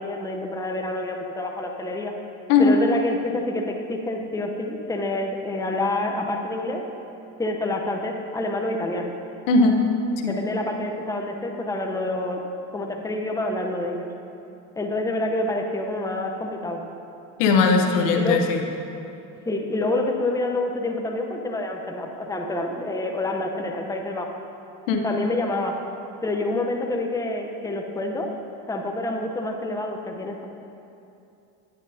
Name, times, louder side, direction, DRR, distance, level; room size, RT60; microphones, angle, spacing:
voice 1, 0.0-2.2 2.6-6.8 7.4-9.1 10.3-12.4 12.7-14.1 14.8-16.8 18.1-18.4 19.4-24.3 25.0-25.8 26.2-28.3 28.7-30.4, left 2 dB, 10° left, 2 dB, 0.7 m, -27 dB
voice 2, 17.4-18.6 24.9-25.0, left 4 dB, 90° left, 4 dB, 0.9 m, -18 dB
10.5 x 9.8 x 2.7 m, 2.7 s
supercardioid pair, 95°, 37 cm